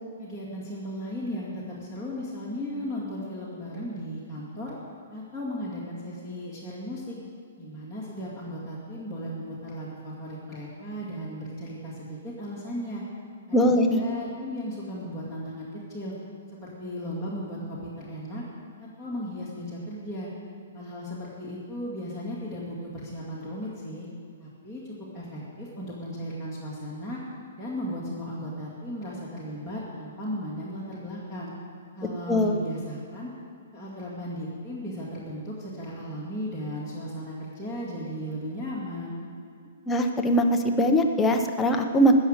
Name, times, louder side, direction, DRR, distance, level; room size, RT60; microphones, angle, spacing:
voice 1, 0.2-4.8 5.1-7.2 7.6-13.0 13.5-16.1 16.5-18.4 18.8-20.3 20.7-24.1 24.4-27.2 27.6-31.5 32.0-33.3 33.7-39.2, equal, 10° right, -9 dB, 2.1 m, -36 dB
voice 2, 13.5-14.0 32.3-32.6 39.9-42.1, equal, 10° left, 4 dB, 0.7 m, -21 dB
16.0 x 6.5 x 8.8 m, 2.2 s
hypercardioid pair, 170°, 0 cm